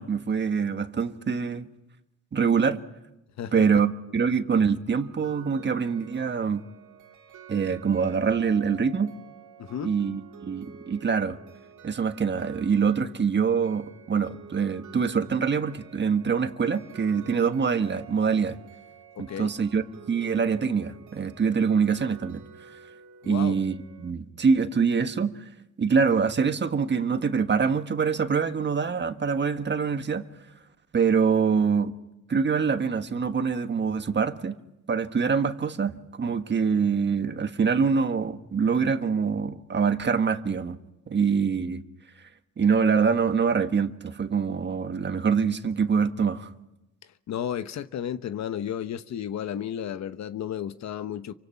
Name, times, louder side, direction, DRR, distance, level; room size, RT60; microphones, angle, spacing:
voice 1, 0.0-1.7 2.3-2.8 3.5-6.6 7.5-9.1 9.8-11.4 11.8-18.6 19.2-22.5 23.3-25.4 25.8-30.2 30.9-32.0 32.3-34.5 34.9-40.8 41.1-41.8 42.6-46.5, right 6 dB, 35° right, 1.5 m, -25 dB
sound 1, 4.9-24.1, right 7 dB, 75° right, 2.6 m, -49 dB
voice 2, 9.6-9.9 19.2-19.5 23.2-23.6 47.3-51.3, left 9 dB, 65° left, 1.0 m, -33 dB
28.0 x 24.5 x 5.8 m
cardioid pair, 90°, 30 cm